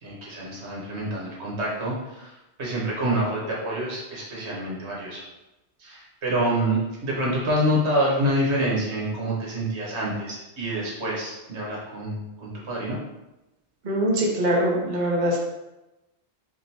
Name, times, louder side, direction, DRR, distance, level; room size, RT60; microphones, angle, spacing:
voice 1, 0.0-5.2 5.8-13.0, right 1 dB, 70° right, -4 dB, 1.5 m, -27 dB
voice 2, 13.8-15.4, right 1 dB, 45° right, -2 dB, 0.9 m, -23 dB
4.8 x 2.8 x 2.8 m, 0.99 s
omnidirectional pair, 1.2 m